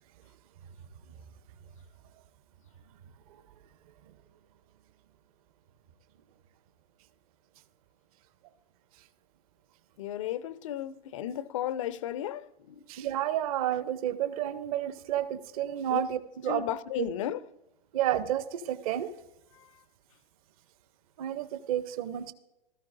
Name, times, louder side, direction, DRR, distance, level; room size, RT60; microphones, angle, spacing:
voice 1, 10.0-12.8 15.9-16.0 16.5-17.4 19.5-19.7, left 11 dB, 35° left, 0.4 m, -34 dB
voice 2, 12.9-16.6 17.0-17.1 17.9-19.1 21.2-22.3, right 12 dB, 35° right, 0.7 m, -30 dB
16.0 x 13.5 x 2.6 m
figure-of-eight pair, 120°, 31 cm